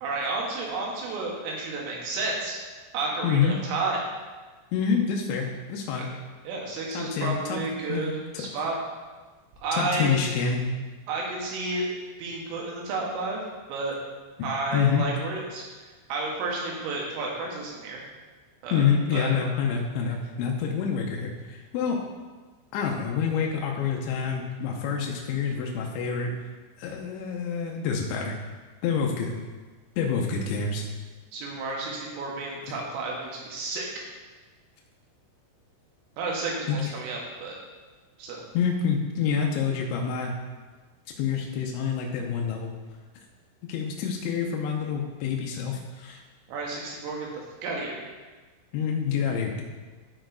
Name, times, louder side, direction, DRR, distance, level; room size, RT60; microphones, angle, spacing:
voice 1, 0.0-2.6 2.9-4.0 6.5-8.1 8.4-8.8 9.6-10.1 11.1-11.9 12.2-13.4 13.7-14.0 14.4-15.6 16.1-18.0 18.6-19.3 31.3-33.9 36.2-37.6 38.2-38.4 46.5-47.3 47.6-48.0, right 3 dB, 80° right, -2 dB, 4.1 m, -31 dB
voice 2, 3.2-3.6 4.7-6.1 6.9-8.4 9.7-10.6 14.4-15.1 18.7-22.0 22.7-26.3 26.8-28.4 28.8-29.4 30.0-30.9 36.7-36.8 38.5-40.4 41.2-42.7 43.7-46.2 48.7-49.6, left 6 dB, 85° left, 0 dB, 2.8 m, -27 dB
12.5 x 4.4 x 4.6 m, 1.3 s
omnidirectional pair, 5.8 m